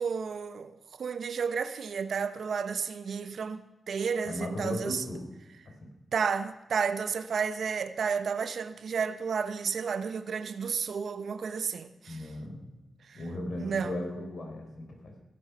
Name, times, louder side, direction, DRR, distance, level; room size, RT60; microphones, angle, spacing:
voice 1, 0.0-3.6 3.9-5.0 6.1-12.2 13.1-13.2 13.6-13.9, right 6 dB, 65° right, 0.8 m, -32 dB
voice 2, 4.2-5.3 5.7-5.9 12.1-12.7 13.1-15.2, left 1 dB, 50° left, 3.8 m, -37 dB
16.5 x 11.0 x 6.9 m
wide cardioid pair, 150°, 0 cm